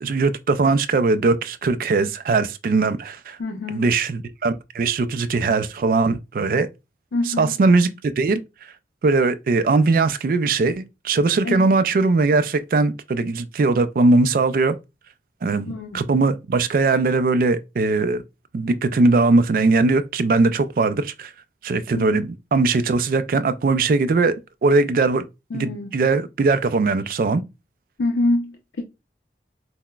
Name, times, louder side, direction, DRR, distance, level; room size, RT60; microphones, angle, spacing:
voice 1, 0.0-3.4 3.7-6.7 7.4-7.9 8.2-8.4 9.0-14.8 15.4-18.2 18.5-21.3 21.6-24.3 24.6-25.2 25.5-27.4, right 3 dB, 50° right, 0.3 m, -20 dB
voice 2, 3.4-3.9 7.1-7.5 11.4-11.7 15.7-16.1 22.0-22.3 25.5-26.0 28.0-28.8, left 2 dB, 85° left, 0.5 m, -26 dB
5.7 x 2.1 x 2.2 m
head